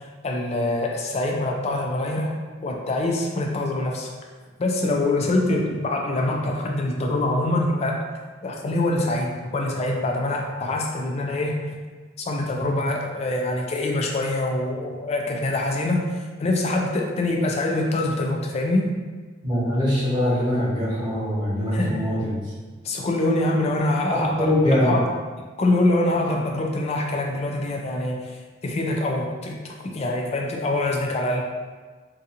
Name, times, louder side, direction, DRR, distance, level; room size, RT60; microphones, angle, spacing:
voice 1, 0.2-2.3 2.6-4.1 4.6-8.0 8.4-11.6 12.2-16.1 16.4-18.9 21.7-22.0 22.8-25.1 25.6-28.3 28.6-31.4, left 2 dB, 35° left, 1 dB, 0.3 m, -24 dB
voice 2, 19.4-22.3 24.2-25.0, left 1 dB, 20° right, -9 dB, 0.9 m, -23 dB
2.5 x 2.3 x 2.7 m, 1.4 s
head